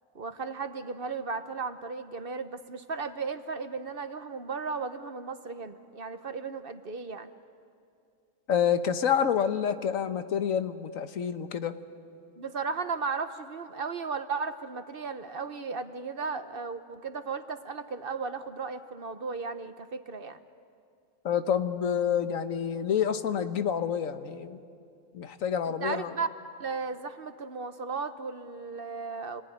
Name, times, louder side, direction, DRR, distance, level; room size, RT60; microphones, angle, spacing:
voice 1, 0.1-7.3 12.4-20.4 25.6-26.3 26.6-29.4, right 4 dB, 50° right, 10 dB, 1.1 m, -35 dB
voice 2, 8.5-11.7 21.2-24.6 25.1-26.1, left 8 dB, 85° left, 10 dB, 1.5 m, -28 dB
28.0 x 19.5 x 9.9 m, 2.4 s
omnidirectional pair, 1.4 m